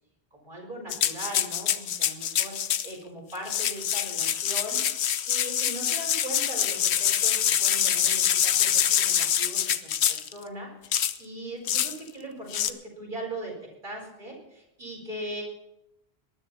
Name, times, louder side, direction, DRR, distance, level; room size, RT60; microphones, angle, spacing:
voice 1, 0.3-15.4, right 1 dB, 50° right, -2 dB, 4.6 m, -40 dB
sound 1, 0.9-2.9 3.4-10.3 10.9-11.2 11.7-12.0 12.5-12.7, left 9 dB, 80° left, 1.0 m, -25 dB
19.5 x 11.0 x 4.2 m, 0.87 s
omnidirectional pair, 1.1 m